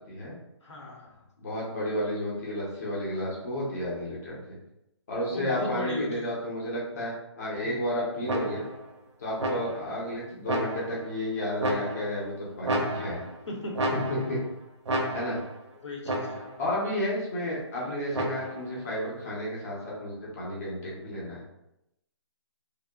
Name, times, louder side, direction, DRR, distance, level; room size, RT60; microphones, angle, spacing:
voice 1, 0.6-1.3 5.3-6.3 7.6-7.9 13.5-13.7 15.8-16.4, left 1 dB, 85° left, -1 dB, 0.8 m, -36 dB
voice 2, 1.4-4.4 5.1-8.6 9.2-13.2 13.9-14.4 15.1-15.4 16.6-21.4, left 1 dB, 35° left, -5 dB, 0.6 m, -32 dB
sound 1, 8.3-8.8 9.4-10.0 10.5-11.1 11.6-12.3 12.6-13.4 13.7-14.5 14.9-15.6 16.1-16.6 18.1-18.7, right 1 dB, 80° right, 0.6 m, -31 dB
2.7 x 2.0 x 2.2 m, 0.85 s
hypercardioid pair, 165°, 15 cm